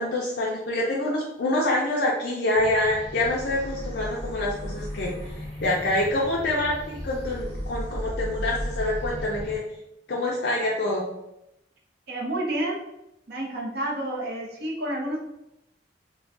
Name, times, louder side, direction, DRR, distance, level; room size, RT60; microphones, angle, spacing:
voice 1, 0.0-9.6 10.1-11.1, left 1 dB, 60° left, -3 dB, 0.4 m, -26 dB
sound 1, 2.5-9.6, equal, 30° right, 1.2 m, -35 dB
voice 2, 12.1-12.8 13.3-15.2, right 1 dB, 55° right, -2 dB, 0.7 m, -29 dB
2.3 x 2.2 x 3.6 m, 0.87 s
head